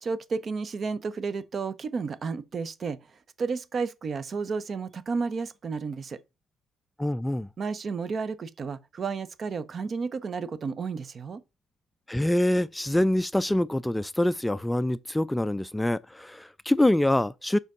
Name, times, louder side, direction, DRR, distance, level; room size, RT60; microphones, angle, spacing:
voice 1, 0.0-3.0 3.4-6.2 7.6-11.4, right 5 dB, 45° right, 0.6 m, -32 dB
voice 2, 7.0-7.5 12.1-17.6, left 1 dB, 10° left, 0.3 m, -25 dB
5.0 x 3.8 x 5.3 m
hypercardioid pair, 55°, 0 cm